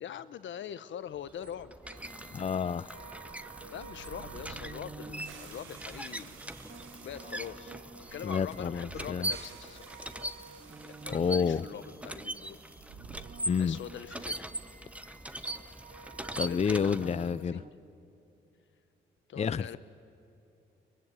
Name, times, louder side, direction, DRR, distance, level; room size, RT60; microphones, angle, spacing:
voice 1, 0.0-1.7 3.7-6.4 6.7-7.8 8.1-10.4 10.8-12.6 13.6-14.5 16.3-17.7 19.3-19.8, left 9 dB, 75° left, 14 dB, 1.0 m, -43 dB
sound 1, 1.2-17.4, right 1 dB, 5° right, 1.0 m, -41 dB
sound 2, 1.8-17.7, right 4 dB, 45° right, 1.9 m, -51 dB
voice 2, 2.3-2.9 8.2-9.3 11.1-11.6 13.5-13.8 16.4-17.6 19.4-19.8, left 6 dB, 35° left, 15 dB, 0.5 m, -29 dB
sound 3, 3.4-11.6 11.9-12.0 12.6-14.0, right 8 dB, 90° right, 1.1 m, -52 dB
23.0 x 21.0 x 9.4 m, 2.8 s
cardioid pair, 65°, 20 cm